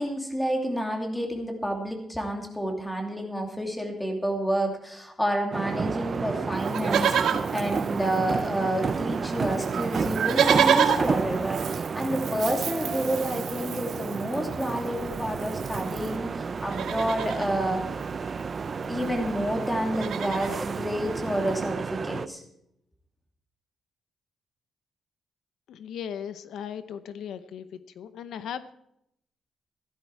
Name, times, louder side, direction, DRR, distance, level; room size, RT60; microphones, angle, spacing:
voice 1, 0.0-17.8 18.8-22.4, equal, 5° left, 2 dB, 2.7 m, -29 dB
sound 1, 5.5-22.3, right 5 dB, 30° right, 0.5 m, -31 dB
Livestock farm animals working animals, 6.6-8.6 8.9-9.0 9.2-16.2 16.6-17.5 18.7-18.8 19.0-19.3 19.6-20.6 21.2-21.3, right 7 dB, 70° right, 1.8 m, -29 dB
voice 2, 25.7-27.7 28.0-28.7, left 8 dB, 80° left, 12 dB, 0.8 m, -37 dB
15.5 x 13.0 x 4.6 m, 0.78 s
wide cardioid pair, 175°, 0 cm